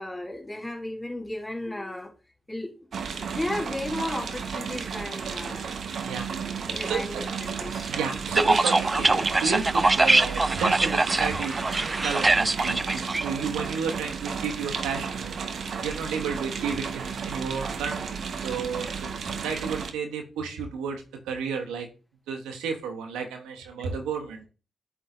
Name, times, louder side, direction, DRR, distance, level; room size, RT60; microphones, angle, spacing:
voice 1, 0.0-2.1 2.5-2.7 3.1-5.7 6.7-7.9, left 1 dB, 20° left, 1 dB, 2.1 m, -34 dB
sound 1, 2.9-19.9, right 6 dB, 65° right, 0.8 m, -33 dB
voice 2, 6.0-6.3 6.6-7.2 7.9-15.3 15.8-21.9 22.3-24.5, right 5 dB, 90° right, 4 dB, 1.0 m, -32 dB
sound 2, 8.4-13.2, right 2 dB, 30° right, 0.3 m, -23 dB
8.2 x 3.6 x 3.8 m, 0.33 s
supercardioid pair, 40°, 0 cm